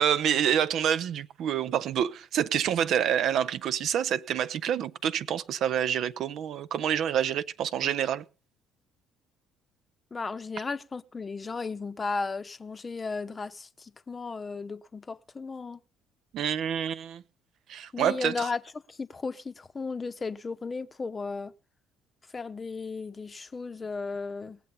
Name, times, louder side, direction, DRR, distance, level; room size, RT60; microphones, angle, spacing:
voice 1, 0.0-8.2 16.3-17.2 17.7-18.5, right 9 dB, 55° right, 0.6 m, -27 dB
voice 2, 10.1-15.8 17.9-18.6 18.9-21.5 22.3-24.6, left 4 dB, 30° left, 0.8 m, -35 dB
19.0 x 7.6 x 5.5 m
figure-of-eight pair, 50°, 0 cm